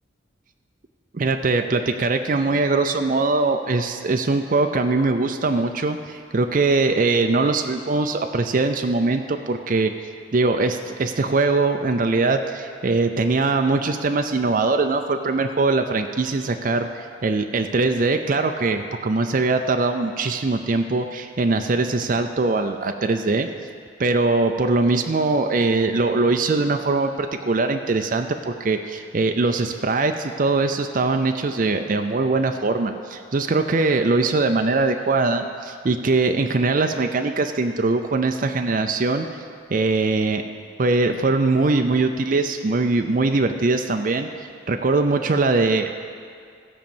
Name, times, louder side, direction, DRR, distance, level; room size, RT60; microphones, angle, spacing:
voice 1, 1.1-9.9 10.3-23.5 24.0-39.3 39.7-40.4 40.8-44.3 44.7-45.9, right 3 dB, 45° right, 5 dB, 0.4 m, -21 dB
15.5 x 5.2 x 7.2 m, 2.2 s
head